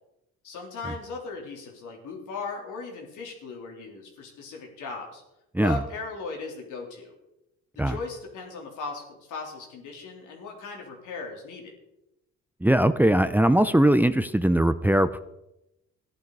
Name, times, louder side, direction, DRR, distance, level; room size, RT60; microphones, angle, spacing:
voice 1, 0.4-5.2 5.6-7.1 7.8-11.7, left 4 dB, 85° left, 0 dB, 3.7 m, -38 dB
voice 2, 12.6-15.2, right 1 dB, 5° right, 12 dB, 0.6 m, -20 dB
14.5 x 11.0 x 4.9 m, 0.88 s
cardioid pair, 90°, 30 cm